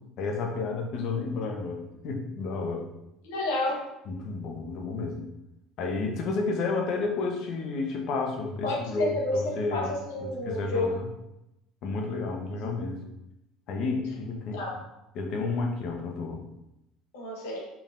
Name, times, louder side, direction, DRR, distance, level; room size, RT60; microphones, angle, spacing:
voice 1, 0.2-1.8 2.0-2.9 4.1-5.3 5.8-9.9 10.2-11.1 11.8-13.0 13.7-14.6 15.1-16.4, left 3 dB, 60° left, 1 dB, 0.9 m, -31 dB
voice 2, 3.2-3.8 8.6-11.0 12.6-12.7 14.5-14.7 17.1-17.6, left 2 dB, 80° left, -3 dB, 1.3 m, -30 dB
4.8 x 3.4 x 2.6 m, 0.88 s
hypercardioid pair, 75°, 0 cm